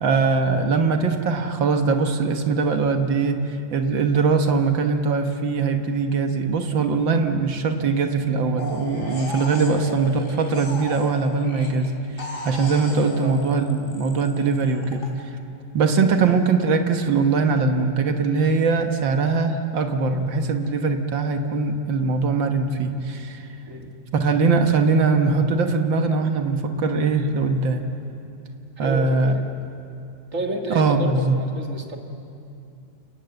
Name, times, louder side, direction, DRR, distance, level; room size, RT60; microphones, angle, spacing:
voice 1, 0.0-3.4 3.7-11.9 12.4-15.1 15.7-23.4 24.1-27.9 28.8-29.3 30.7-31.4, right 4 dB, 80° right, 5 dB, 2.0 m, -21 dB
sound 1, 8.6-11.9 12.2-15.1, left 3 dB, 40° left, 4.0 m, -36 dB
voice 2, 12.9-13.3 16.1-16.3 23.7-23.9 28.8-29.5 30.3-32.0, equal, 45° right, 2 dB, 2.2 m, -31 dB
29.5 x 18.5 x 7.9 m, 2.6 s
omnidirectional pair, 2.0 m